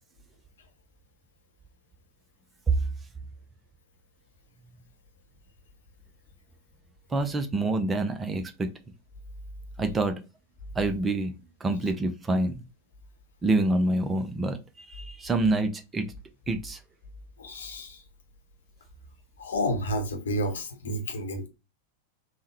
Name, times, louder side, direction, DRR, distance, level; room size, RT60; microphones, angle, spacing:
voice 1, 7.1-8.7 9.8-10.2 10.7-11.3 11.6-12.6 13.4-16.1 16.5-16.8, right 2 dB, 15° right, 0.5 m, -26 dB
voice 2, 17.4-18.0 19.4-21.5, equal, 65° left, 0.8 m, -30 dB
3.6 x 2.1 x 3.0 m
figure-of-eight pair, 90°, 0 cm